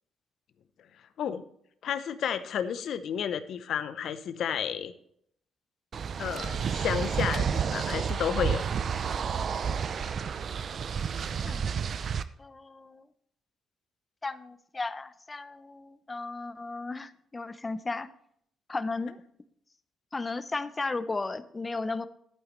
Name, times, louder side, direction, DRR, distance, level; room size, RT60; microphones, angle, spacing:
voice 1, 1.8-4.9 6.2-8.6, left 8 dB, 70° left, 12 dB, 0.7 m, -31 dB
sound 1, 5.9-12.2, right 7 dB, 55° right, 0.5 m, -30 dB
voice 2, 12.4-13.0 14.2-18.1 18.7-19.2 20.1-22.1, left 3 dB, 25° left, 14 dB, 0.6 m, -35 dB
11.5 x 8.8 x 3.2 m, 0.69 s
cardioid pair, 90°, 0 cm